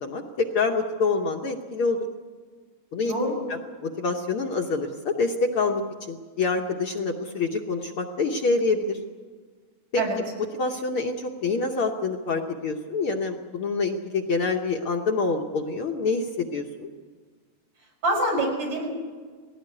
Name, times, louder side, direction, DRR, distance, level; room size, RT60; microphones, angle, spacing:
voice 1, 0.0-2.1 2.9-3.1 3.5-5.8 6.1-9.0 9.9-10.0 10.5-16.9, left 3 dB, 60° left, 2 dB, 1.7 m, -26 dB
voice 2, 18.0-18.9, right 1 dB, 70° right, -1 dB, 6.7 m, -25 dB
20.0 x 16.5 x 9.8 m, 1.5 s
omnidirectional pair, 3.3 m